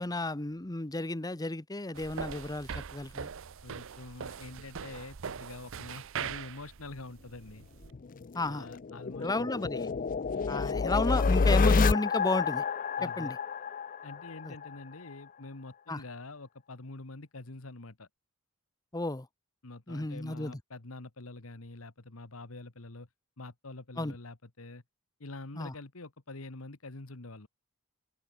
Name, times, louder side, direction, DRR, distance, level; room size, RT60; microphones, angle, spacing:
voice 1, 0.0-3.3 8.3-8.7 9.2-9.9 10.5-12.6 13.0-13.4 14.4-14.5 15.9-16.0 18.9-19.3 19.9-20.6 24.0-24.1 25.6-25.7, left 2 dB, 20° left, 0.9 m, -33 dB
sound 1, 2.0-7.9, right 7 dB, 65° right, 0.6 m, -41 dB
voice 2, 3.6-7.6 8.4-9.5 13.0-13.4 14.0-18.1 19.6-23.1 23.4-24.8 25.2-27.5, left 2 dB, 75° left, 1.7 m, -46 dB
sound 2, 7.9-14.7, left 4 dB, 40° left, 0.5 m, -29 dB
head